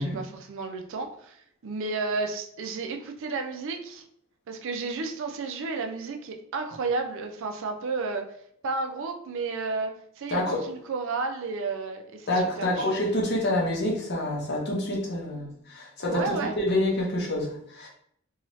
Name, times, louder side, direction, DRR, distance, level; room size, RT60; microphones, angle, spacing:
voice 1, 0.0-1.4 1.6-4.0 4.5-8.3 8.6-9.9 10.2-12.3 12.6-12.9 16.1-16.5, right 4 dB, 65° right, 4 dB, 0.4 m, -32 dB
voice 2, 12.3-17.9, left 1 dB, 55° left, -2 dB, 0.8 m, -27 dB
2.7 x 2.3 x 3.0 m, 0.68 s
head